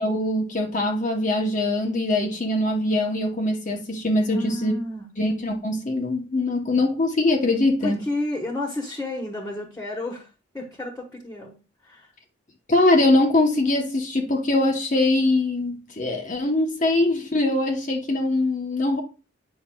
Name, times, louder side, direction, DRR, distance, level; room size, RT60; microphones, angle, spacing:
voice 1, 0.0-4.7 5.2-8.0 12.7-19.0, left 2 dB, 35° left, 0.8 m, -22 dB
voice 2, 4.3-5.1 7.8-11.6 11.8-12.1, left 2 dB, 10° left, 1.2 m, -31 dB
9.0 x 5.7 x 2.2 m
head